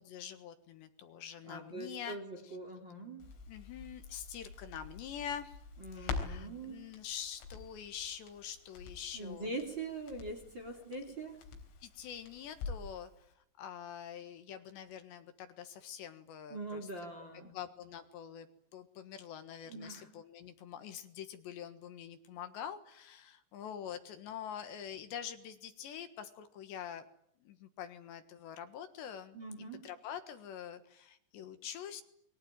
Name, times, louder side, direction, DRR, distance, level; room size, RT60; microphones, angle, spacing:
voice 1, 0.0-2.2 2.4-2.6 3.5-5.6 5.9-9.5 11.8-16.9 17.5-27.1 27.4-29.4 29.8-32.0, left 9 dB, 70° left, 9 dB, 3.5 m, -45 dB
voice 2, 1.4-3.3 5.8-6.9 9.1-11.4 16.5-17.5 19.7-20.1 29.3-29.9, right 2 dB, 30° right, 4 dB, 2.9 m, -43 dB
Crackle, 3.2-13.0 13.3-13.4, left 4 dB, 85° left, 6.4 m, -46 dB
27.5 x 22.5 x 9.0 m, 0.72 s
omnidirectional pair, 5.7 m